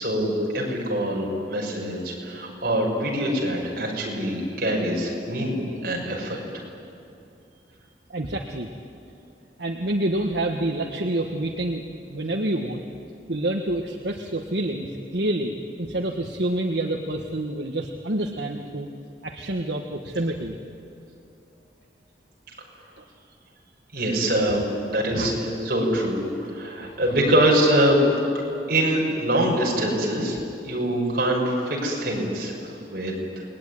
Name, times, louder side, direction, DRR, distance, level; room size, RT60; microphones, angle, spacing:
voice 1, 0.0-6.4 23.9-28.0 28.7-30.4 30.6-33.4, right 1 dB, 55° right, -1 dB, 6.3 m, -24 dB
voice 2, 8.1-8.7 9.6-11.8 12.1-12.8 13.3-18.9 19.2-20.5 23.0-23.1 25.1-25.3 26.8-26.9, right 1 dB, 75° right, 3 dB, 1.5 m, -27 dB
28.5 x 20.5 x 10.0 m, 2.7 s
head